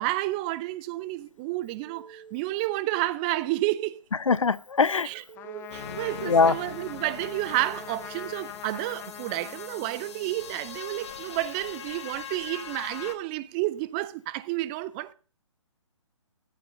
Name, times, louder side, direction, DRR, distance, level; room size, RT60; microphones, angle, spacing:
voice 1, 0.0-4.0 5.0-15.1, right 17 dB, 20° right, 0.4 m, -30 dB
Telephone, 1.8-2.4 5.3-6.3 7.5-8.4, right 6 dB, 65° right, 1.3 m, -48 dB
voice 2, 4.3-5.1 6.2-6.5, left 5 dB, 80° left, 0.6 m, -21 dB
Trumpet, 5.4-10.6, left 10 dB, 15° left, 0.9 m, -42 dB
sound 1, 5.7-13.2, left 6 dB, 60° left, 1.8 m, -42 dB
14.5 x 13.5 x 2.5 m
figure-of-eight pair, 135°, 16 cm